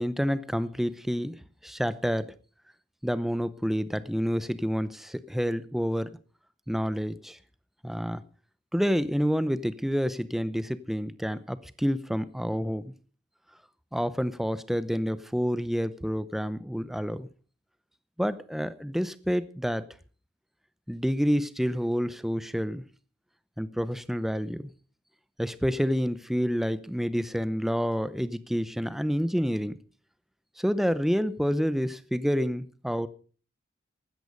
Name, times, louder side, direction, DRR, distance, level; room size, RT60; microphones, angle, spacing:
voice 1, 0.0-1.4 1.6-2.3 3.0-6.2 6.7-7.4 7.8-8.2 8.7-12.9 13.9-17.3 18.2-19.8 20.9-22.8 23.6-24.7 25.4-29.8 30.6-33.1, equal, ahead, 0.7 m, -28 dB
15.5 x 13.0 x 5.3 m
head